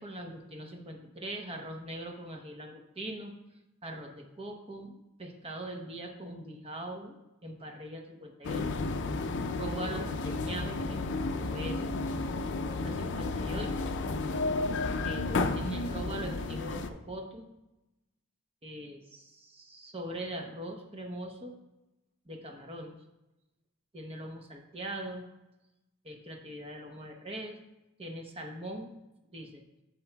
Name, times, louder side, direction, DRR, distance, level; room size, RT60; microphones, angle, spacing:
voice 1, 0.0-3.4 3.8-7.2 7.4-8.8 9.5-11.9 12.2-12.4 12.7-13.9 15.0-17.5 18.6-21.5 22.3-23.0 23.9-25.2 26.0-27.6 28.0-28.9 29.3-29.6, right 1 dB, 25° right, 2 dB, 0.8 m, -41 dB
sound 1, 8.4-16.9, left 3 dB, 55° left, 0.5 m, -32 dB
9.6 x 6.9 x 2.3 m, 0.96 s
head